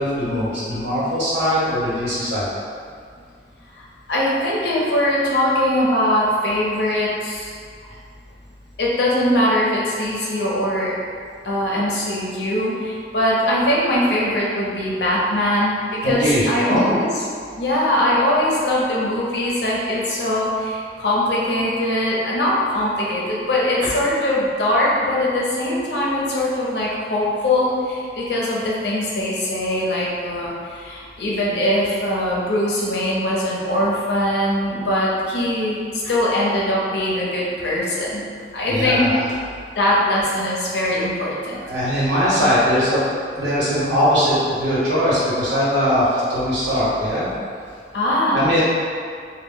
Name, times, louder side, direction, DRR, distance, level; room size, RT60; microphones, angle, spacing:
voice 1, 0.0-2.5 16.0-16.8 36.0-36.1 38.6-39.2 41.7-43.1 43.3-47.3 48.3-48.6, equal, 85° right, -9 dB, 1.1 m, -20 dB
voice 2, 3.7-7.5 8.8-10.9 11.4-17.1 17.6-38.2 38.5-39.1 39.8-41.6 47.9-48.6, left 1 dB, 70° left, -5 dB, 0.6 m, -21 dB
2.2 x 2.0 x 3.7 m, 2.2 s
head